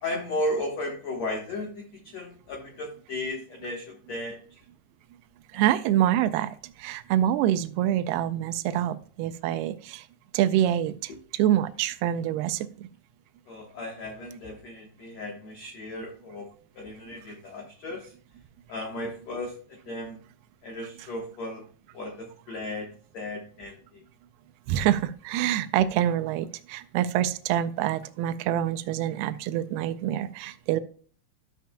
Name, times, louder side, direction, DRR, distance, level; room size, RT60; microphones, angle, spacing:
voice 1, 0.0-4.6 5.5-5.6 11.1-11.2 13.5-18.1 18.7-20.2 20.6-21.7 21.9-22.9 23.1-24.0, left 1 dB, 80° left, 1 dB, 1.5 m, -35 dB
voice 2, 5.5-6.5 6.8-10.0 10.3-12.9 24.7-30.8, right 11 dB, 85° right, 10 dB, 2.3 m, -26 dB
12.5 x 7.6 x 2.2 m, 0.43 s
omnidirectional pair, 5.1 m